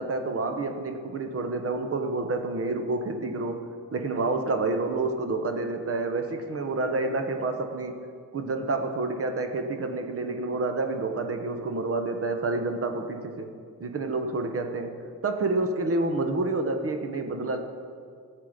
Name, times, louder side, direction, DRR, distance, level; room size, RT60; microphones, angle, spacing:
voice 1, 0.0-8.1 8.3-13.5 13.8-15.0 15.2-17.6, right 3 dB, 40° right, 6 dB, 0.9 m, -29 dB
14.5 x 7.6 x 5.0 m, 2.2 s
wide cardioid pair, 175°, 34 cm